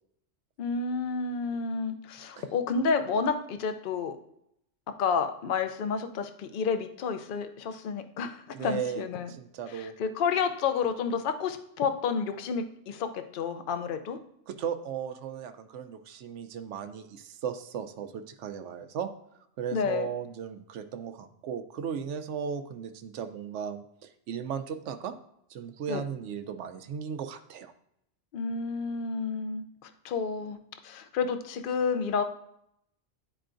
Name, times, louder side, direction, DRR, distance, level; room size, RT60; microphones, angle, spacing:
voice 1, 0.6-4.2 5.0-9.3 9.7-14.2 19.7-20.1 25.9-26.0 28.3-30.6 30.8-32.2, left 5 dB, 55° left, 9 dB, 0.7 m, -30 dB
voice 2, 8.5-9.9 14.5-19.1 19.6-25.2 25.5-27.7, right 7 dB, 75° right, 9 dB, 0.9 m, -36 dB
11.0 x 4.5 x 2.5 m, 0.75 s
omnidirectional pair, 1.3 m